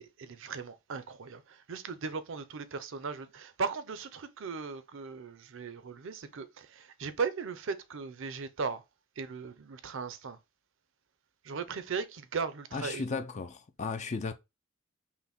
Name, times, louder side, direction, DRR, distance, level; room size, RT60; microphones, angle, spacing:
voice 1, 0.0-8.8 9.2-10.4 11.4-13.2, right 5 dB, 65° right, 0.6 m, -37 dB
voice 2, 12.7-14.3, left 4 dB, 35° left, 0.4 m, -35 dB
5.7 x 2.2 x 4.1 m
head